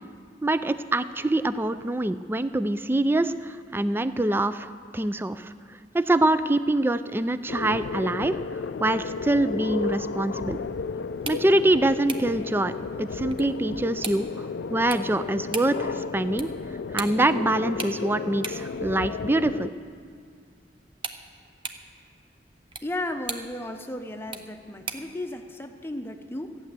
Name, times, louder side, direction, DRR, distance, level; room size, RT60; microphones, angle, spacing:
voice 1, 0.4-5.5 5.9-8.4 8.8-10.6 11.3-12.7 13.0-16.5 16.9-19.7, right 1 dB, 10° right, 13 dB, 0.3 m, -25 dB
sound 1, 7.5-19.7, left 4 dB, 75° left, 0.4 m, -33 dB
sound 2, 11.1-25.2, right 5 dB, 30° right, 0.7 m, -42 dB
voice 2, 22.8-26.6, left 1 dB, 15° left, 6 dB, 0.7 m, -34 dB
14.0 x 9.3 x 7.5 m, 2.2 s
head